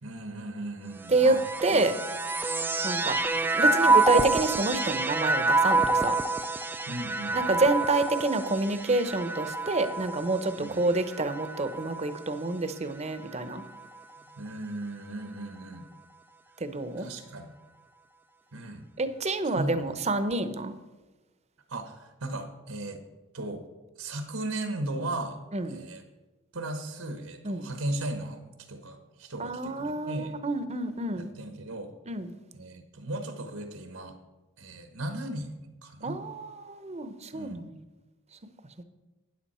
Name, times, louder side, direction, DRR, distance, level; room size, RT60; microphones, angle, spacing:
voice 1, 0.0-1.4 1.7-1.9 6.9-7.6 10.6-10.8 14.3-15.9 17.0-17.5 18.5-18.9 19.5-19.9 21.7-23.0 23.3-23.6 24.0-25.4 25.7-26.0 26.5-30.3 31.2-31.9 32.5-34.2 34.6-36.2 37.3-37.6, right 1 dB, 85° right, 6 dB, 1.3 m, -36 dB
sound 1, 1.0-12.5 13.2-14.0, right 3 dB, 10° right, 0.4 m, -27 dB
voice 2, 1.1-1.9 2.8-3.2 3.5-6.2 7.3-13.6 16.6-17.1 19.0-20.7 25.5-25.8 27.4-27.7 29.4-31.3 32.1-32.3 36.0-37.8, right 2 dB, 30° right, 11 dB, 0.7 m, -28 dB
12.5 x 9.7 x 4.3 m, 1.1 s
head